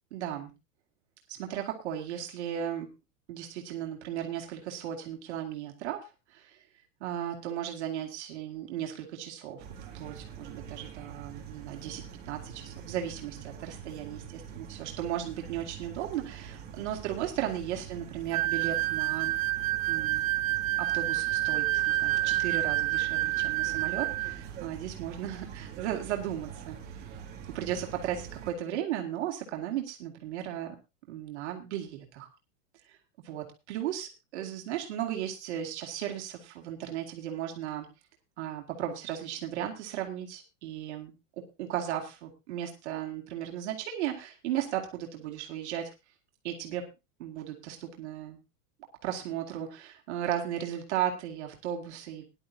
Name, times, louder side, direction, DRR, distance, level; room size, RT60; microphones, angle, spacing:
voice 1, 0.1-0.5 1.3-2.9 3.3-6.6 7.0-9.7 9.9-19.3 19.9-20.3 20.8-27.0 27.5-30.7 31.1-32.3 32.8-33.0 33.2-37.9 38.4-41.1 41.6-45.9 46.4-46.9 47.2-48.4 49.0-52.3, right 10 dB, 60° right, 2 dB, 2.4 m, -36 dB
sound 1, 9.6-28.5, right 7 dB, 25° right, 2.5 m, -44 dB
sound 2, 18.3-24.4, right 16 dB, 85° right, 0.9 m, -28 dB
19.0 x 11.0 x 2.8 m, 0.26 s
supercardioid pair, 180°, 39 cm